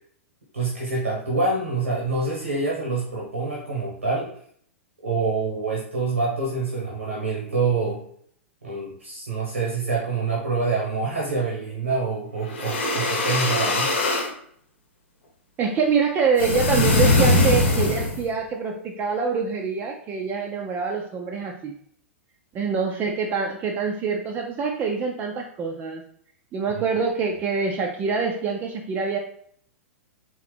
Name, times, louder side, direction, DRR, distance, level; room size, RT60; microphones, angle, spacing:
voice 1, 0.5-4.3 5.0-8.0 8.6-13.9, right 3 dB, 80° right, -4 dB, 1.0 m, -26 dB
sound 1, 12.5-14.3 16.4-18.3, left 2 dB, 65° left, 0.9 m, -21 dB
voice 2, 15.6-21.7 22.5-26.0 26.5-29.2, right 5 dB, 25° right, 1 dB, 0.4 m, -25 dB
3.8 x 2.8 x 3.3 m, 0.63 s
figure-of-eight pair, 100°, 7 cm